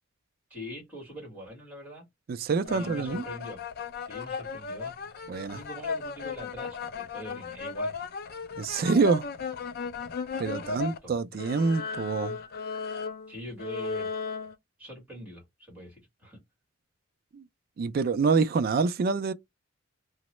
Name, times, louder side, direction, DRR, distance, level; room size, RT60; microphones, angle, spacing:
voice 1, 0.5-2.1 2.6-3.6 4.0-4.9 5.5-7.9 10.4-11.1 13.3-14.1 14.8-16.4, equal, 5° right, 1.7 m, -43 dB
voice 2, 2.3-3.2 5.3-5.6 8.6-9.3 10.4-12.4 17.3-17.4 17.8-19.3, right 4 dB, 45° right, 0.3 m, -26 dB
sound 1, 2.6-11.0 11.3-14.5, left 5 dB, 45° left, 0.4 m, -36 dB
3.0 x 2.1 x 2.9 m
head